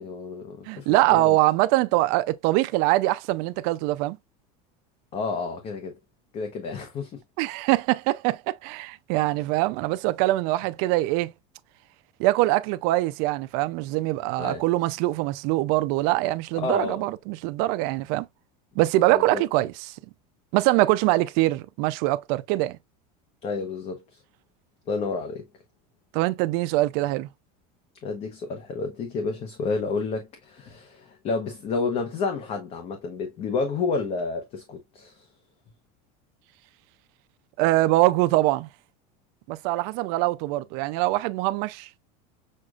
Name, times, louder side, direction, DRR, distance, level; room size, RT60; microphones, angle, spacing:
voice 1, 0.0-1.4 5.1-6.0 6.3-7.2 14.4-14.6 16.6-17.0 19.1-19.4 23.4-24.2 24.9-25.4 28.0-35.3, left 4 dB, 35° left, 0.8 m, -30 dB
voice 2, 0.7-4.2 7.4-11.3 12.2-18.3 18.8-20.0 20.5-22.8 26.1-27.3 37.6-38.7 39.5-41.9, right 18 dB, 55° right, 0.4 m, -23 dB
6.4 x 2.4 x 2.3 m
supercardioid pair, 155°, 19 cm